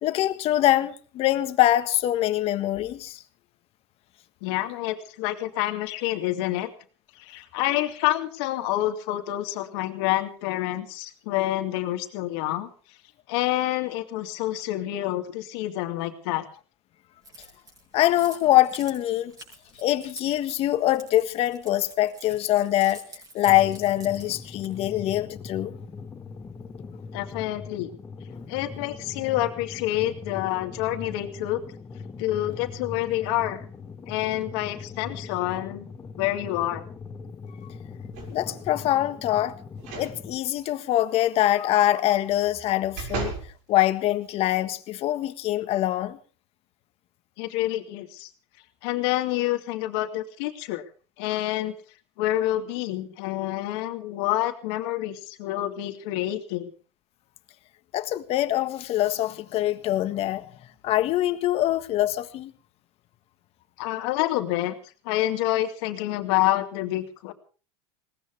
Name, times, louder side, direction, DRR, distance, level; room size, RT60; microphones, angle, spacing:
voice 1, 0.0-3.2 17.9-19.3 19.8-23.0 23.3-25.7 38.3-39.5 40.0-43.3 43.7-46.2 57.9-60.5 60.8-62.5, left 14 dB, 45° left, 1.5 m, -24 dB
voice 2, 4.4-6.7 7.3-12.7 13.3-16.4 27.1-27.9 28.5-31.6 32.2-33.6 34.1-35.8 36.2-36.8 47.4-48.3 48.8-50.8 51.2-51.7 52.2-56.7 63.8-64.8 65.0-67.3, left 15 dB, 65° left, 2.4 m, -27 dB
Keys jangling, 17.2-25.0, right 2 dB, 25° right, 6.7 m, -46 dB
sound 1, 23.5-40.4, left 4 dB, 20° left, 1.4 m, -40 dB
sound 2, 38.1-38.7 39.8-40.1 40.6-40.7 42.3-43.5 44.1-44.2, right 5 dB, 60° right, 5.9 m, -35 dB
21.0 x 18.0 x 3.5 m
supercardioid pair, 120°, 14 cm